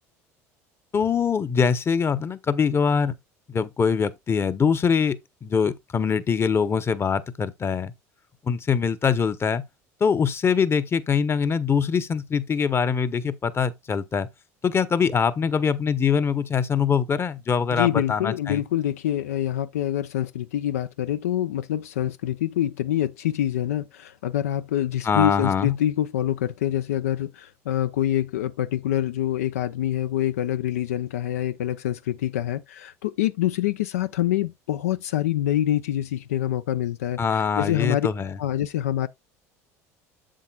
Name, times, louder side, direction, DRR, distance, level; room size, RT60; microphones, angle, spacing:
voice 1, 0.9-3.2 3.5-7.9 8.4-9.6 10.0-14.3 14.6-18.6 25.0-25.8 37.2-38.4, left 6 dB, 30° left, 0.8 m, -23 dB
voice 2, 17.7-38.1 38.4-39.1, left 12 dB, 90° left, 0.4 m, -26 dB
7.5 x 7.4 x 2.3 m
hypercardioid pair, 75°, 8 cm